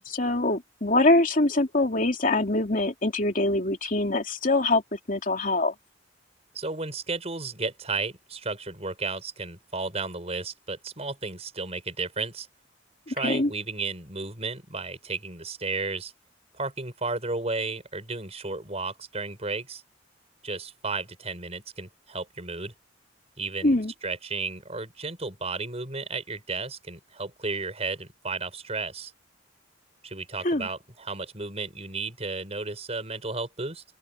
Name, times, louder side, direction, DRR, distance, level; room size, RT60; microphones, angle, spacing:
voice 1, 0.1-5.7 13.1-13.5 23.6-23.9 30.4-30.7, left 2 dB, 45° left, 2.8 m, -24 dB
voice 2, 6.5-12.5 13.1-16.1 16.5-19.8 20.4-22.7 23.4-29.1 30.0-33.8, right 3 dB, 35° right, 6.0 m, -33 dB
open air
head